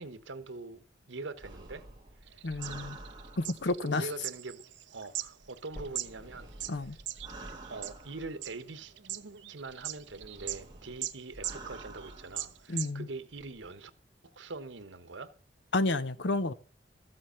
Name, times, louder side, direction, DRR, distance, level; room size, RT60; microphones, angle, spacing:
voice 1, 0.0-1.8 2.3-3.1 3.7-4.6 4.9-6.5 7.7-8.9 9.5-13.9 14.2-15.3, right 3 dB, 85° right, 1.1 m, -43 dB
sound 1, 1.4-3.9 5.2-8.8 9.7-12.6 13.3-13.7, right 2 dB, 25° right, 2.1 m, -49 dB
sound 2, 2.3-6.1 6.6-8.0 8.4-10.6 11.0-11.2 11.4-12.9, right 14 dB, 70° right, 0.6 m, -40 dB
voice 2, 2.4-3.0 3.4-4.1 6.7-7.0 12.7-13.1 15.7-16.5, left 2 dB, 70° left, 0.8 m, -30 dB
sound 3, 5.8-9.8 10.3-10.4 11.0-11.1 11.4-11.5 12.3-12.4, equal, 10° left, 3.4 m, -54 dB
13.5 x 7.8 x 5.7 m
head